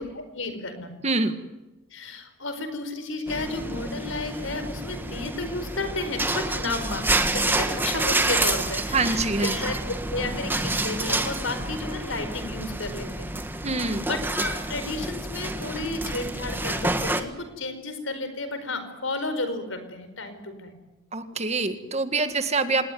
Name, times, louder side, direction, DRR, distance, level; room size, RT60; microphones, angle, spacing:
voice 1, 0.0-0.9 1.9-9.8 10.1-13.4 13.7-20.8, left 2 dB, 80° left, 9 dB, 4.7 m, -32 dB
voice 2, 1.0-1.4 8.9-9.5 13.6-14.1 21.1-22.9, right 3 dB, 35° right, 9 dB, 1.8 m, -25 dB
sound 1, 3.3-17.2, right 2 dB, 10° right, 1.6 m, -28 dB
26.5 x 19.5 x 9.4 m, 1.0 s
head